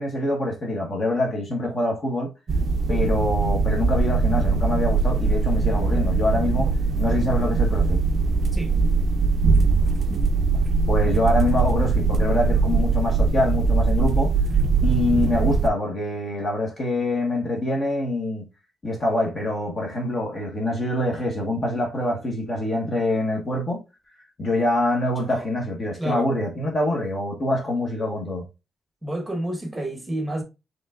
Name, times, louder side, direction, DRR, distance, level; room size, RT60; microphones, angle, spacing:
voice 1, 0.0-2.3 2.9-6.7 7.0-8.0 10.9-14.3 14.8-18.5 18.8-23.8 24.4-28.4, left 1 dB, 35° left, 1.1 m, -25 dB
sound 1, 2.5-15.7, right 4 dB, 45° right, 0.4 m, -21 dB
voice 2, 25.9-26.3 29.0-30.4, right 1 dB, 10° right, 1.1 m, -30 dB
5.0 x 3.1 x 2.4 m
cardioid pair, 115°, 0 cm